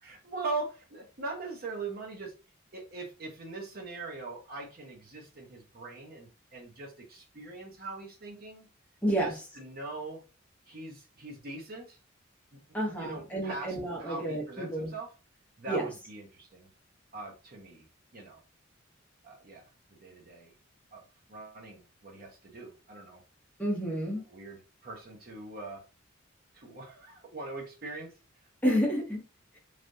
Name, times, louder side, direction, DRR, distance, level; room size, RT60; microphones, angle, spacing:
voice 1, 0.0-2.3 2.7-8.7 9.2-10.2 10.7-12.0 13.0-15.1 15.6-16.7 17.1-17.8 18.1-18.4 19.2-19.6 19.9-20.5 20.9-21.0 21.3-23.2 24.3-25.8 26.5-28.1, right 3 dB, 50° right, 0.9 m, -41 dB
voice 2, 9.0-9.3 12.7-14.9 15.7-15.9 23.6-24.2 28.6-29.2, equal, 5° left, 0.8 m, -30 dB
3.3 x 2.4 x 2.6 m
head